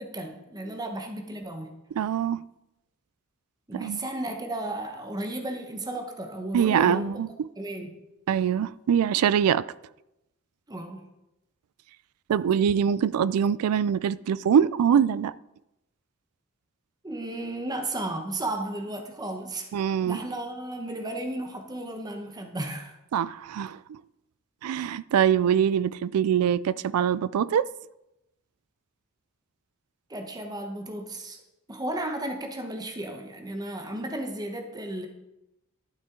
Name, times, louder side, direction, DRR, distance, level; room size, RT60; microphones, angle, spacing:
voice 1, 0.0-1.8 3.7-7.2 7.6-8.0 10.7-11.0 17.0-19.7 20.1-23.0 30.1-31.4 31.7-35.1, right 1 dB, 20° right, 0.9 m, -34 dB
voice 2, 2.0-2.4 3.7-4.0 6.5-7.5 8.3-9.6 12.3-15.3 19.7-20.2 23.1-24.0 24.6-27.7, right 8 dB, 90° right, 0.3 m, -23 dB
12.0 x 7.3 x 3.7 m
head